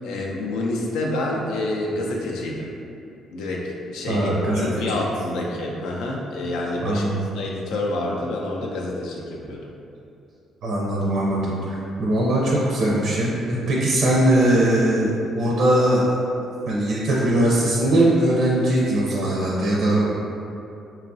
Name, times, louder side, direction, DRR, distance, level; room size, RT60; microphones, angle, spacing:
voice 1, 0.0-2.7 3.3-7.1 7.3-9.7, left 2 dB, 90° left, -1 dB, 0.4 m, -28 dB
voice 2, 4.1-5.0 6.8-7.3 10.6-16.1 16.7-20.1, right 1 dB, 70° right, -5 dB, 0.5 m, -20 dB
2.9 x 2.3 x 2.6 m, 2.7 s
cardioid pair, 105°, 0 cm